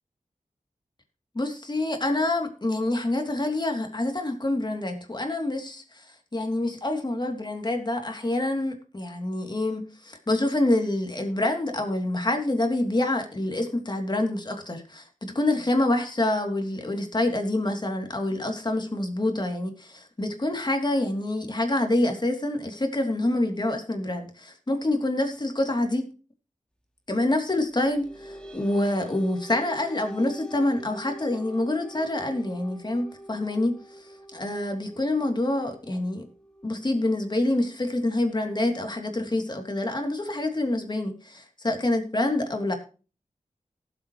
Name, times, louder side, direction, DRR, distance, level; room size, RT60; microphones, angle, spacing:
voice 1, 1.3-6.0 6.3-26.1 27.1-33.8 34.3-36.2 36.6-42.7, left 1 dB, 35° left, 4 dB, 3.0 m, -26 dB
sound 1, 27.7-38.6, right 1 dB, 5° left, 2.7 m, -45 dB
18.5 x 7.9 x 3.2 m, 0.36 s
wide cardioid pair, 60°, 13 cm